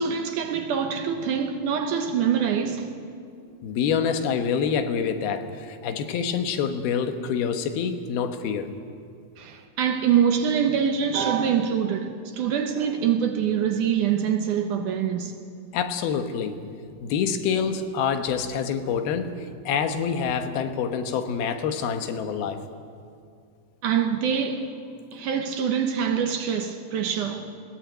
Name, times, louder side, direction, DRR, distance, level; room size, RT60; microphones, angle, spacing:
voice 1, 0.0-2.9 9.4-15.3 23.8-24.7 25.1-27.5, right 7 dB, 70° right, 2.2 m, -24 dB
voice 2, 3.6-8.7 15.7-16.6 17.0-22.7, left 6 dB, 80° left, 3.1 m, -26 dB
20.5 x 17.5 x 9.0 m
omnidirectional pair, 4.4 m